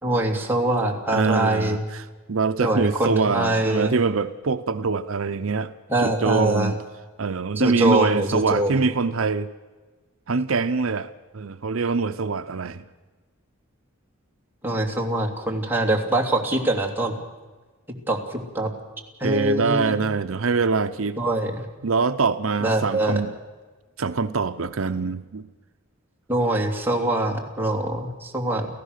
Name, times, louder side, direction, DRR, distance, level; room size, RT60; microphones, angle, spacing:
voice 1, 0.0-1.8 2.6-4.0 5.9-6.7 7.6-8.8 14.6-17.1 18.1-18.7 19.2-19.9 21.2-21.6 22.6-23.2 26.3-28.7, right 1 dB, 10° right, 1 dB, 2.8 m, -23 dB
voice 2, 1.1-5.7 6.0-6.8 7.2-9.5 10.3-12.8 19.2-21.2 21.8-23.3 24.0-25.4, right 4 dB, 75° right, 10 dB, 0.7 m, -24 dB
29.5 x 15.0 x 6.6 m, 1.3 s
head